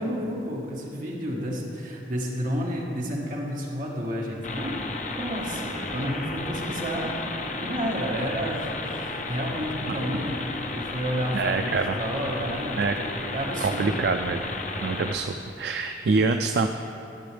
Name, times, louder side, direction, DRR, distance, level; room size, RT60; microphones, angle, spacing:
voice 1, 0.0-4.8 5.2-10.4 10.7-14.0, equal, 50° right, -3 dB, 1.5 m, -31 dB
sound 1, 4.4-15.2, left 3 dB, 45° left, 0.6 m, -33 dB
voice 2, 11.3-12.0 12.8-13.0 13.6-14.4 14.8-16.7, right 4 dB, 65° right, 6 dB, 0.3 m, -25 dB
13.0 x 8.0 x 3.4 m, 3.0 s
head